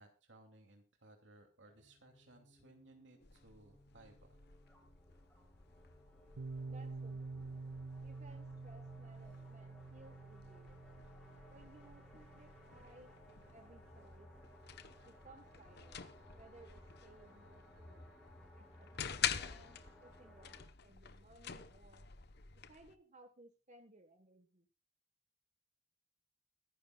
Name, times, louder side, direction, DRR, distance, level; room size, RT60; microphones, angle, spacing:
voice 1, 0.0-4.4, right 2 dB, 65° right, 3 dB, 2.7 m, -62 dB
sound 1, 1.7-20.6, left 1 dB, 5° left, 5.2 m, -61 dB
sound 2, 3.2-22.9, left 8 dB, 55° left, 1.0 m, -48 dB
Piano, 6.4-13.8, right 3 dB, 90° right, 0.7 m, -49 dB
voice 2, 6.7-7.6 8.0-10.8 11.5-13.1 13.5-14.3 15.0-16.0 16.3-18.0 18.5-19.7 20.0-22.1 22.7-24.7, right 2 dB, 35° right, 6 dB, 1.4 m, -61 dB
24.0 x 11.0 x 2.4 m, 0.31 s
head